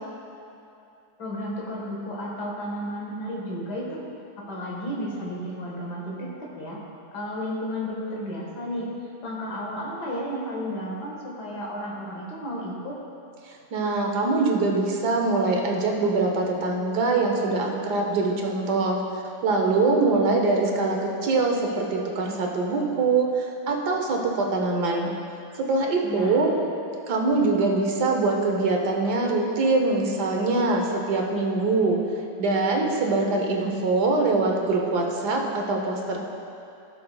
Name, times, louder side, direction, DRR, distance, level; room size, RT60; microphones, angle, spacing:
voice 1, 1.2-4.0 4.4-6.8 7.1-8.9 9.2-13.0 26.0-26.4, equal, 90° left, -3 dB, 2.2 m, -33 dB
voice 2, 13.7-19.0 19.4-25.1 25.7-26.5 27.1-32.0 32.4-36.2, right 3 dB, 80° right, 1 dB, 1.6 m, -23 dB
16.5 x 6.6 x 2.3 m, 2.7 s
omnidirectional pair, 1.7 m